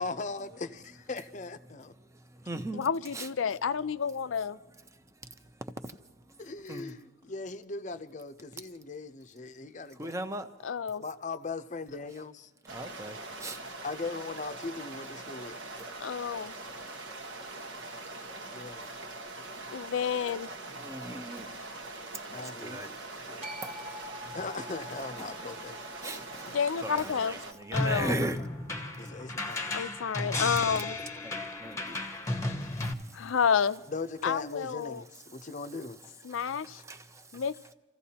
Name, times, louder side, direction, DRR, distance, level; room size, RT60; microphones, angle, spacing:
voice 1, 0.0-1.9 6.4-10.2 11.0-12.5 13.8-15.6 18.5-18.9 20.7-20.8 22.3-22.8 23.3-23.5 24.3-25.8 29.0-29.9 33.9-36.0, left 3 dB, 40° left, 0.6 m, -39 dB
voice 2, 2.0-3.3 4.9-6.4 6.7-6.9 10.0-10.5 12.7-13.6 15.8-15.9 18.8-18.9 20.7-21.5 21.8-21.9 22.3-23.0 23.6-24.4 25.2-25.3 26.0-28.4 31.2-32.0 32.8-33.3 35.4-35.5 36.3-37.5, right 1 dB, 15° right, 0.7 m, -40 dB
voice 3, 2.8-4.6 10.6-11.0 16.0-16.5 19.7-20.5 26.5-27.3 27.7-28.1 29.7-31.0 33.1-33.8 34.2-35.0 36.3-36.8 37.3-37.5, left 6 dB, 85° left, 0.5 m, -30 dB
sound 1, 12.7-27.5, right 2 dB, 75° right, 1.4 m, -43 dB
sound 2, 23.4-29.6, left 1 dB, 35° right, 1.3 m, -48 dB
sound 3, 27.7-32.9, left 2 dB, 15° left, 1.0 m, -34 dB
29.0 x 15.5 x 2.8 m
head